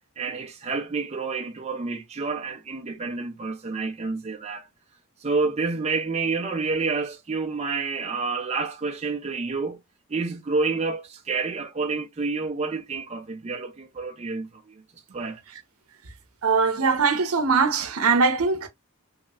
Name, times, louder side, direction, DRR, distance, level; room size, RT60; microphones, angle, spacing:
voice 1, 0.2-4.7 5.2-9.8 10.1-14.8 15.1-15.4, right 4 dB, 30° right, 0.5 m, -29 dB
voice 2, 16.4-18.7, right 4 dB, 80° right, 0.7 m, -21 dB
3.2 x 2.9 x 2.3 m
head